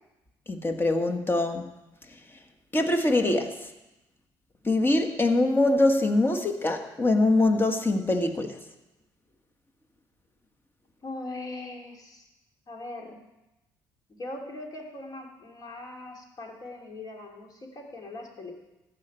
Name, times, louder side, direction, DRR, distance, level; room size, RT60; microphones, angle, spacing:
voice 1, 0.5-1.6 2.7-3.6 4.6-8.6, left 2 dB, 20° left, 6 dB, 1.5 m, -23 dB
voice 2, 11.0-12.3 12.7-13.2 14.2-18.5, left 2 dB, 40° left, 1 dB, 3.0 m, -40 dB
14.0 x 5.8 x 8.8 m, 0.96 s
supercardioid pair, 80°, 10 cm